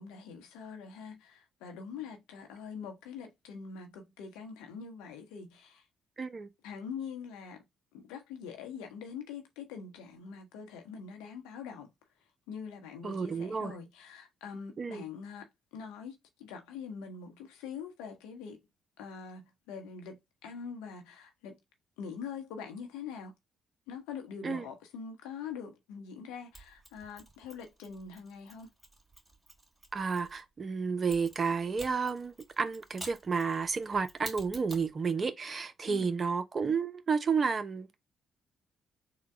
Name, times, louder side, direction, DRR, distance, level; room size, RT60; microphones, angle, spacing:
voice 1, 0.0-5.9 6.6-7.7 7.9-18.7 19.0-21.6 22.0-23.3 23.9-28.7 35.9-36.2, left 6 dB, 80° left, 0.9 m, -44 dB
voice 2, 6.2-6.5 13.0-13.7 14.8-15.0 24.4-24.6 29.9-38.0, right 5 dB, 40° right, 0.6 m, -31 dB
Mechanisms, 26.5-30.4 31.1-34.9, right 1 dB, 10° right, 2.2 m, -50 dB
3.8 x 2.2 x 4.5 m
hypercardioid pair, 50°, 0 cm